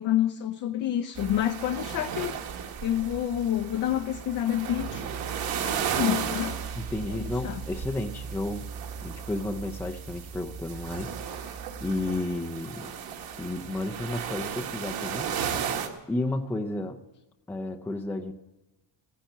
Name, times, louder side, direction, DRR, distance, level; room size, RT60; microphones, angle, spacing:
voice 1, 0.0-2.3 2.8-6.6 7.1-7.6, left 11 dB, 50° left, 0.7 m, -28 dB
sound 1, 1.2-15.9, right 7 dB, 60° right, 1.9 m, -34 dB
voice 2, 6.8-8.7 9.0-12.9 13.4-15.7 16.1-17.0 17.5-18.3, left 2 dB, 5° left, 0.5 m, -32 dB
15.0 x 10.0 x 9.0 m
cardioid pair, 155°, 40 cm